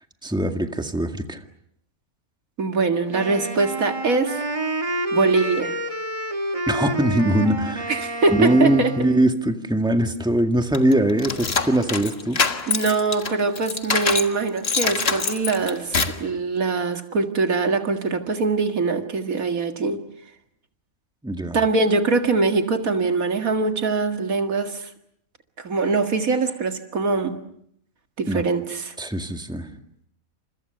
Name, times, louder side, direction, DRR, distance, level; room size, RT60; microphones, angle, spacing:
voice 1, 0.2-1.4 6.7-7.9 8.3-12.4 21.2-21.6 28.3-28.4 29.0-29.7, right 1 dB, 5° right, 5 dB, 1.9 m, -21 dB
voice 2, 2.6-4.4 5.1-5.8 7.9-8.9 12.7-20.0 21.5-24.9 25.6-27.4 28.2-28.9, right 4 dB, 85° right, 6 dB, 2.4 m, -23 dB
Wind instrument woodwind instrument, 3.1-9.3, right 1 dB, 25° right, 1.8 m, -29 dB
sound 1, 10.7-14.3 14.6-16.2, left 4 dB, 45° left, 1.8 m, -24 dB
29.5 x 27.5 x 6.8 m, 0.72 s
omnidirectional pair, 1.4 m